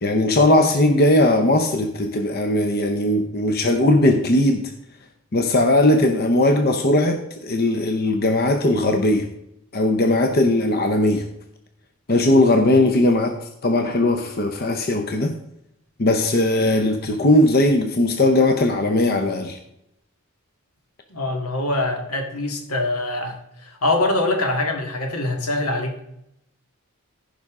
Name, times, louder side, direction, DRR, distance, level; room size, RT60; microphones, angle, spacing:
voice 1, 0.0-4.7 5.3-9.3 9.7-11.3 12.1-13.4 13.6-15.4 16.0-19.6, left 1 dB, 45° left, 0.7 m, -18 dB
voice 2, 21.1-26.0, left 2 dB, 85° left, 1.8 m, -24 dB
15.5 x 5.4 x 3.7 m
head